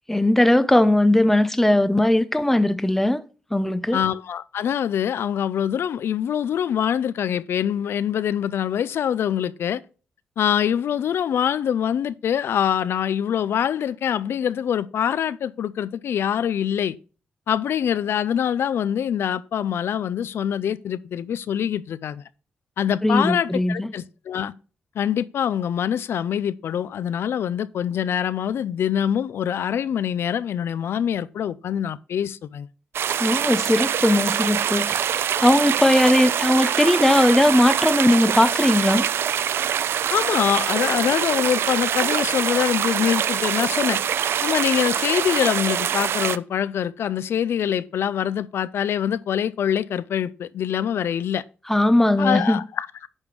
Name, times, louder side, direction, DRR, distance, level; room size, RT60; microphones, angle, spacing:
voice 1, 0.1-3.2 3.5-4.0 23.0-23.9 33.2-35.0 35.4-39.1 51.7-52.6, left 1 dB, 5° left, 0.7 m, -19 dB
voice 2, 3.9-9.8 10.4-17.0 17.5-22.2 22.8-24.5 25.0-32.7 40.1-44.0 44.4-51.4 52.2-53.1, left 9 dB, 75° left, 0.4 m, -24 dB
sound 1, 32.9-46.4, right 9 dB, 75° right, 0.4 m, -24 dB
10.5 x 3.5 x 6.1 m
cardioid pair, 100°, 4 cm